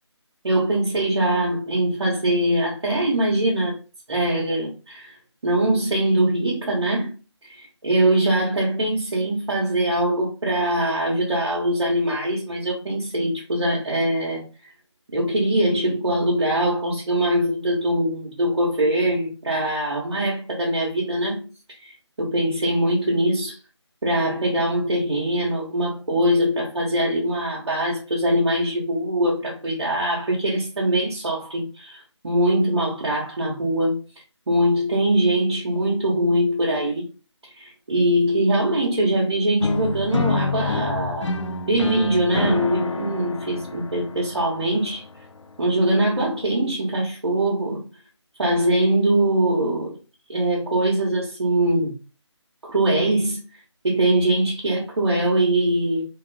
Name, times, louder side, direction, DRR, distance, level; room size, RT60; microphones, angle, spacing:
voice 1, 0.4-3.8 4.1-5.2 5.4-7.1 7.4-14.4 15.1-21.5 21.8-23.6 24.0-34.0 34.5-37.1 37.6-41.3 41.7-45.0 45.6-47.8 48.4-50.0 50.3-52.0 52.6-53.4 53.8-56.0, right 1 dB, 65° right, 0.9 m, -22 dB
sound 1, 39.6-45.6, left 3 dB, 85° left, 0.4 m, -28 dB
2.9 x 2.0 x 2.4 m
figure-of-eight pair, 160°, 15 cm